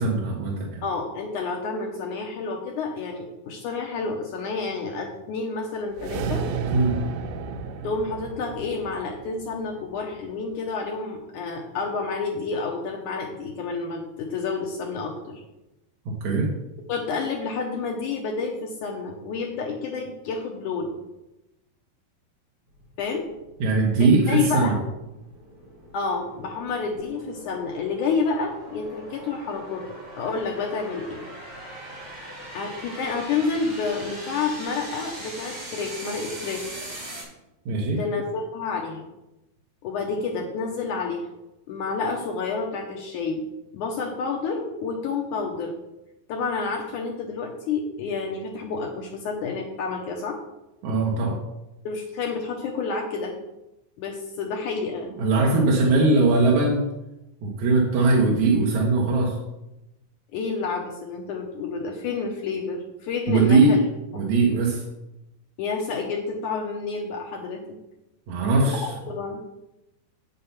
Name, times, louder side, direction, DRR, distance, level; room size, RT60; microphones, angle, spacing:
voice 1, 0.0-0.8 6.7-7.0 16.1-16.5 23.6-24.7 37.7-38.0 50.8-51.4 55.2-56.8 57.4-59.4 63.3-63.7 64.1-64.8 68.3-68.9, right 3 dB, 65° right, -2 dB, 2.3 m, -20 dB
voice 2, 0.8-6.5 7.8-15.4 16.9-20.9 23.0-23.3 24.3-24.8 25.9-31.2 32.5-36.7 38.0-39.1 39.8-41.3 41.7-43.4 43.7-45.8 46.3-50.4 51.9-53.4 54.0-55.1 60.3-63.8 64.1-64.3 65.6-67.8 68.7-69.4, left 4 dB, 70° left, 1 dB, 2.0 m, -29 dB
sound 1, 5.9-10.3, right 5 dB, 85° right, 2.8 m, -32 dB
sound 2, 22.7-37.2, right 1 dB, 35° right, 4.9 m, -41 dB
8.6 x 6.8 x 5.7 m, 0.95 s
omnidirectional pair, 4.4 m